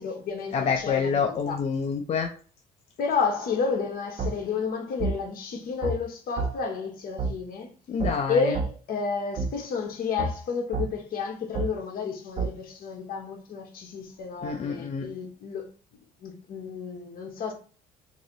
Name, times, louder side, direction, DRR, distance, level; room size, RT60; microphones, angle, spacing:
voice 1, 0.0-1.6 3.0-7.7 8.3-15.7 16.2-17.5, left 5 dB, 60° left, 1.1 m, -31 dB
voice 2, 0.5-2.3 7.9-8.5 14.4-15.1, left 6 dB, 40° left, 0.5 m, -27 dB
sound 1, 4.2-4.3 5.0-5.1 5.8-6.0 6.4-6.5 7.2-7.3 8.0-8.1 8.5-8.7 9.4-9.5 10.2-10.3 10.7-10.9 11.5-11.7 12.4-12.5, right 4 dB, 40° right, 1.1 m, -27 dB
3.0 x 2.7 x 3.9 m
cardioid pair, 110°, 17 cm